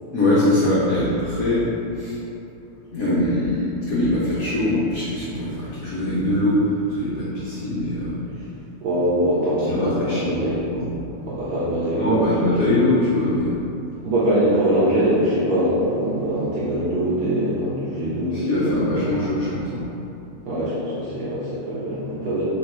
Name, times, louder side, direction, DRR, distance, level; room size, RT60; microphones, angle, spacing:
voice 1, 0.1-1.7 1.9-2.2 2.9-8.2 9.7-10.4 10.7-10.9 11.9-13.6 18.3-19.8, left 1 dB, 80° left, -9 dB, 0.7 m, -22 dB
voice 2, 8.8-10.6 11.2-12.5 14.0-19.3 20.4-22.4, right 1 dB, 70° right, -9 dB, 1.0 m, -23 dB
3.2 x 2.8 x 4.3 m, 2.8 s
omnidirectional pair, 2.4 m